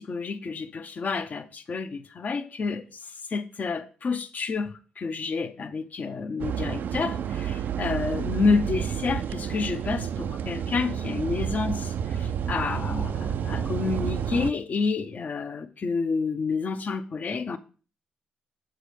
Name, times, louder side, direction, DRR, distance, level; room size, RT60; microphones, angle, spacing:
voice 1, 0.0-3.0 3.3-17.6, left 4 dB, 50° left, 0.7 m, -29 dB
sound 1, 6.4-14.5, right 8 dB, 65° right, 0.3 m, -30 dB
6.7 x 4.9 x 5.0 m
hypercardioid pair, 45°, 3 cm